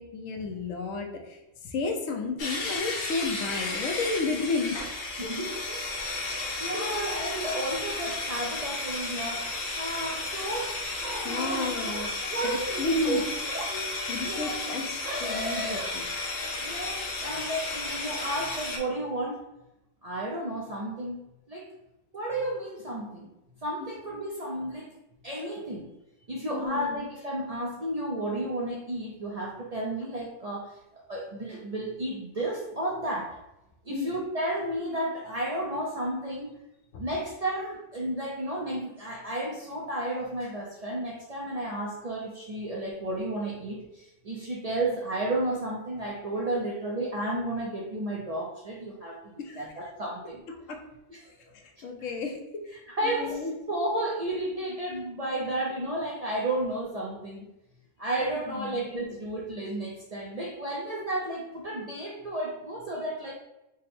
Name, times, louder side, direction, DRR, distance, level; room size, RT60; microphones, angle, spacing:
voice 1, 0.0-4.8 6.2-7.2 11.2-12.1 12.4-13.2 13.6-16.0 26.5-27.1 33.9-34.1 36.9-37.0 49.4-49.7 50.5-50.8 51.5-52.7 53.0-53.6 58.5-58.8, left 3 dB, 90° left, 3 dB, 1.0 m, -33 dB
sound 1, 2.4-18.8, left 3 dB, 50° left, 0.7 m, -33 dB
voice 2, 5.2-5.9 6.2-9.5 9.8-10.7 11.3-11.7 12.3-13.2 14.2-14.6 16.6-19.4 20.0-21.2 21.5-21.7 22.1-23.3 23.6-24.9 25.2-25.9 26.3-33.4 33.8-36.5 37.0-50.4 51.1-51.3 52.9-53.4 53.7-57.4 58.0-63.3, right 1 dB, 50° right, -3 dB, 0.4 m, -32 dB
sound 2, 11.0-12.1 13.4-13.7 15.0-15.9, right 1 dB, 80° right, 1.1 m, -36 dB
3.6 x 2.0 x 4.2 m, 0.92 s
omnidirectional pair, 1.3 m